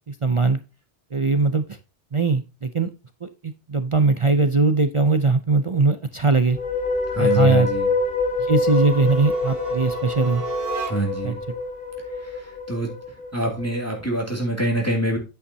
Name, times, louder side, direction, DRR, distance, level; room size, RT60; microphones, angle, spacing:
voice 1, 0.1-0.6 1.1-1.8 2.1-2.9 3.2-6.6 7.2-7.7 8.5-10.4 11.2-11.3, right 3 dB, 40° right, 10 dB, 0.5 m, -20 dB
sound 1, 6.4-13.7, left 3 dB, 45° left, 1.8 m, -25 dB
voice 2, 7.1-7.9 10.9-11.4 12.2-12.9 13.3-15.2, right 1 dB, 15° left, -1 dB, 2.3 m, -25 dB
sound 2, 8.6-11.3, right 6 dB, 60° right, 1.5 m, -34 dB
9.0 x 8.3 x 2.7 m, 0.29 s
omnidirectional pair, 1.2 m